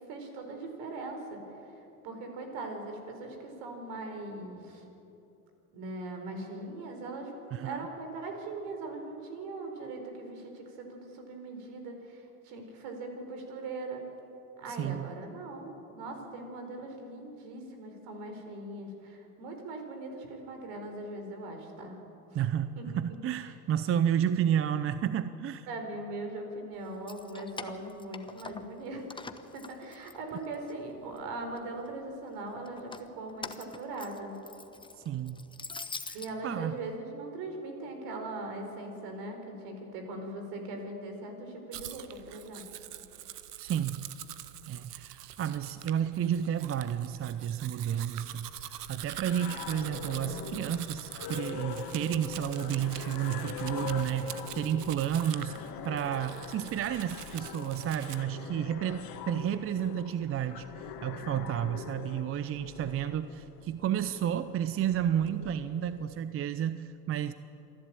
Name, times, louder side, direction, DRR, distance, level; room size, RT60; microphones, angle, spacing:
voice 1, 0.1-1.4 2.0-4.8 5.7-7.3 7.6-14.0 14.6-22.0 22.8-23.0 25.7-29.2 29.5-34.4 36.1-42.7, right 2 dB, 60° right, 4 dB, 4.6 m, -40 dB
voice 2, 7.5-7.8 14.7-15.1 22.3-25.7 35.0-35.4 36.1-36.7 43.6-44.1 44.6-67.3, right 10 dB, 30° right, 13 dB, 0.7 m, -31 dB
Keys jangling, 26.9-28.8 29.1-30.7 31.1-31.9 32.7-36.3, left 3 dB, 10° left, 1.1 m, -44 dB
Domestic sounds home sounds, 41.7-58.2, right 12 dB, 80° right, 1.0 m, -45 dB
sound 1, 49.2-66.2, left 7 dB, 50° left, 2.2 m, -43 dB
27.0 x 11.5 x 8.9 m, 2.9 s
hypercardioid pair, 75°, 46 cm